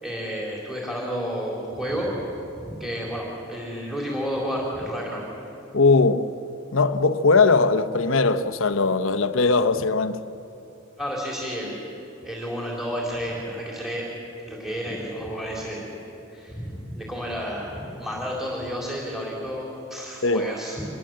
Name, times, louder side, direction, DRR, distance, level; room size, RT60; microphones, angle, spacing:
voice 1, 0.0-2.3 2.6-5.2 11.0-11.9 12.2-14.1 14.5-15.9 16.3-20.8, equal, ahead, 3.9 m, -31 dB
voice 2, 5.7-6.3 6.7-10.2 20.2-20.5, left 3 dB, 75° left, 1.0 m, -20 dB
26.0 x 21.5 x 7.8 m
head